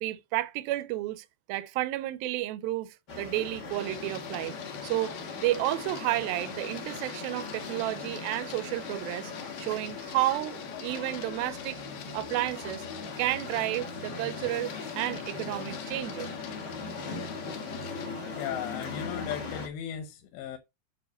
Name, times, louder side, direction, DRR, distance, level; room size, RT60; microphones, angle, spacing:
voice 1, 0.0-4.6 4.8-11.8 12.1-12.9 13.2-16.3, right 16 dB, 80° right, 2.2 m, -31 dB
sound 1, 3.1-19.7, left 4 dB, 50° left, 1.2 m, -40 dB
Printer, 3.7-18.1, left 10 dB, 70° left, 2.2 m, -44 dB
voice 2, 18.4-20.6, left 10 dB, 90° left, 3.2 m, -36 dB
9.3 x 3.3 x 6.6 m
omnidirectional pair, 4.9 m